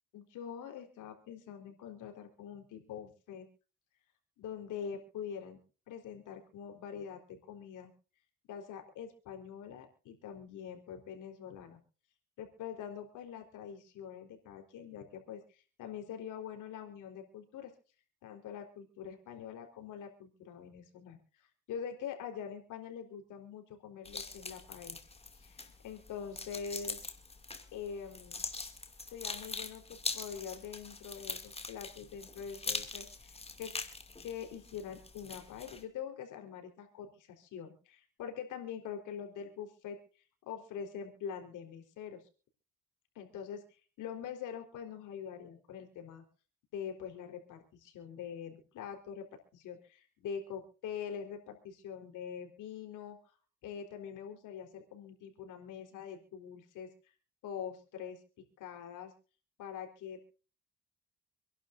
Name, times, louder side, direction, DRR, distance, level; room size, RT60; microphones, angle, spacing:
voice 1, 0.1-3.5 4.4-5.6 5.9-7.9 8.5-11.8 12.4-17.7 18.2-25.0 25.4-27.0 27.7-28.4 29.1-33.7 34.2-40.0 40.5-42.2 43.2-46.2 46.7-53.2 53.6-56.9 57.4-58.2 58.6-59.1 59.6-60.2, left 7 dB, 90° left, 4 dB, 4.1 m, -44 dB
sound 1, 24.1-35.8, left 3 dB, 20° left, 2.5 m, -43 dB
27.0 x 11.5 x 2.6 m, 0.38 s
cardioid pair, 90°, 30 cm